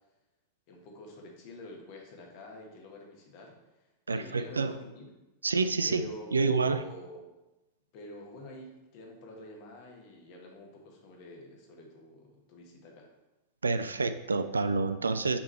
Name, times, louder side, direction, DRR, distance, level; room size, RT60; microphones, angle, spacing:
voice 1, 0.7-3.6 4.1-5.1 5.8-7.4 7.9-13.1, left 1 dB, 45° left, 1 dB, 1.4 m, -47 dB
voice 2, 4.1-4.8 5.4-6.8 13.6-15.4, right 4 dB, 75° right, 11 dB, 0.3 m, -28 dB
6.0 x 3.8 x 4.4 m, 1.0 s
figure-of-eight pair, 90°, 0 cm